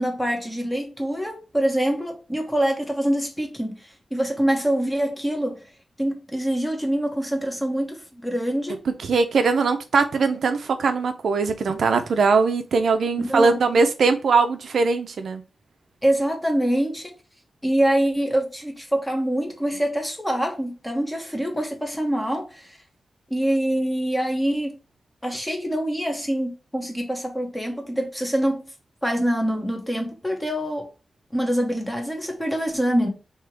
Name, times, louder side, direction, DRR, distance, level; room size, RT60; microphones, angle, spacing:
voice 1, 0.0-5.7 6.0-8.8 13.2-13.6 16.0-17.1 17.6-22.8 23.3-24.8 25.2-28.7 29.0-30.9 31.3-33.1, right 1 dB, 10° left, 1.1 m, -25 dB
voice 2, 8.9-15.4, right 4 dB, 75° right, 0.5 m, -21 dB
3.4 x 2.9 x 4.6 m
wide cardioid pair, 125°, 0 cm